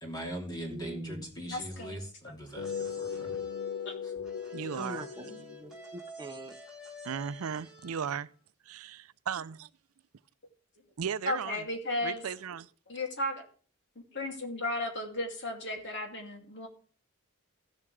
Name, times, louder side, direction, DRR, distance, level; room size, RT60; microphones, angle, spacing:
voice 1, 0.0-3.4 4.0-4.1, right 1 dB, 20° left, 3.0 m, -41 dB
voice 2, 0.7-1.3 4.8-6.5, right 1 dB, 20° right, 0.7 m, -43 dB
voice 3, 1.4-2.0 2.2-2.3 3.8-3.9 11.3-12.2 12.9-13.5 14.1-16.7, left 1 dB, 55° left, 2.6 m, -35 dB
sound 1, 2.5-8.4, right 1 dB, 5° right, 3.1 m, -51 dB
sound 2, 2.6-6.1, left 7 dB, 85° left, 1.1 m, -38 dB
voice 4, 4.5-5.1 7.0-8.3 8.7-9.7 11.0-11.6 12.0-12.7, right 7 dB, 75° right, 0.5 m, -36 dB
16.0 x 7.3 x 3.3 m
head